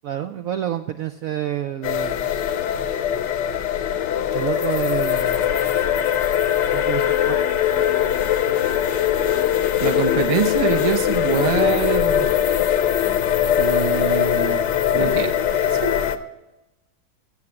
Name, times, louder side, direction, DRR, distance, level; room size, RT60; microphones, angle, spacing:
voice 1, 0.0-2.4 4.3-5.5 6.7-7.4, right 11 dB, 75° right, 8 dB, 0.8 m, -28 dB
sound 1, 1.8-16.2, left 10 dB, 75° left, 1.4 m, -21 dB
voice 2, 9.8-12.3 13.6-14.6 14.9-16.0, right 6 dB, 40° right, 4 dB, 0.5 m, -24 dB
15.5 x 7.4 x 7.8 m, 1.0 s
omnidirectional pair, 2.0 m